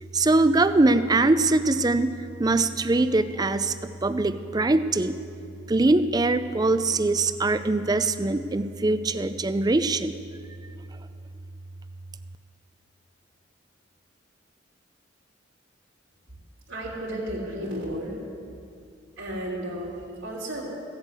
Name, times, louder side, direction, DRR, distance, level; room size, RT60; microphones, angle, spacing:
voice 1, 0.1-2.1 2.4-5.2 5.7-10.1, right 2 dB, 20° right, 11 dB, 0.4 m, -22 dB
voice 2, 16.7-18.2 19.2-20.6, right 1 dB, 85° right, -6 dB, 3.1 m, -33 dB
15.5 x 8.1 x 8.2 m, 2.4 s
head